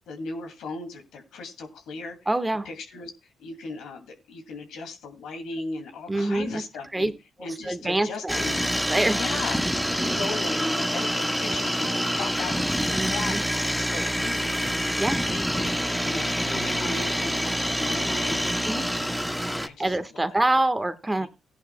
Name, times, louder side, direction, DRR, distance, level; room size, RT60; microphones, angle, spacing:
voice 1, 0.1-2.3 2.6-3.1 3.4-7.1 7.4-8.7 9.1-9.6 10.0-15.7 16.0-18.5 18.9-20.4 21.2-21.3, left 3 dB, 80° left, 4 dB, 2.4 m, -37 dB
voice 2, 2.3-2.7 6.1-6.6 6.9-7.1 7.7-8.4 8.9-9.2 12.9-13.4 15.0-15.2 18.7-18.8 19.8-21.3, right 2 dB, 20° right, 11 dB, 1.4 m, -25 dB
sound 1, 8.3-19.7, equal, ahead, 1.1 m, -26 dB
17.0 x 10.5 x 2.2 m, 0.25 s
supercardioid pair, 50°, 0 cm